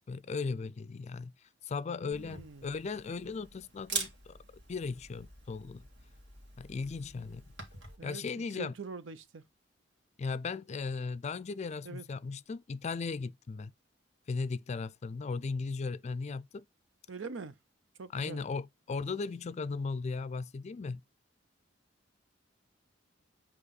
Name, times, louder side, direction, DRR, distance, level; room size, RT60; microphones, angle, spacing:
voice 1, 0.1-1.3 1.6-4.4 4.7-5.9 6.6-7.4 8.0-8.7 10.2-13.7 14.3-16.6 18.1-21.0, left 4 dB, 35° left, 0.4 m, -37 dB
Camera, 2.1-8.0, right 4 dB, 65° right, 2.1 m, -44 dB
voice 2, 2.1-2.7 8.0-9.4 11.8-12.0 17.1-17.6 18.0-18.4, right 4 dB, 85° right, 0.7 m, -44 dB
8.0 x 3.0 x 4.0 m
head